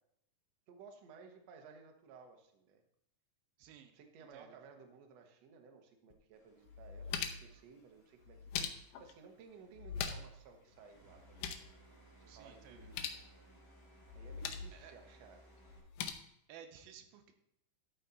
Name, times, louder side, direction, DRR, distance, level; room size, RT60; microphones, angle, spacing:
voice 1, 0.7-2.8 3.9-8.4 9.0-11.5 12.2-13.2 14.1-15.5, right 5 dB, 65° right, 3 dB, 1.8 m, -57 dB
voice 2, 3.6-3.9 4.3-4.5 12.3-12.9 14.7-14.9 16.5-17.3, right 8 dB, 85° right, 6 dB, 2.7 m, -55 dB
sound 1, 6.1-6.2 6.7-7.6 8.3-9.1 9.8-10.4 10.7-10.8 11.1-11.7 12.8-13.2 14.1-14.7 15.7-16.1, left 7 dB, 80° left, 2.3 m, -41 dB
sound 2, 6.3-15.8, right 1 dB, 5° left, 2.3 m, -63 dB
13.0 x 5.6 x 4.0 m, 0.78 s
omnidirectional pair, 4.1 m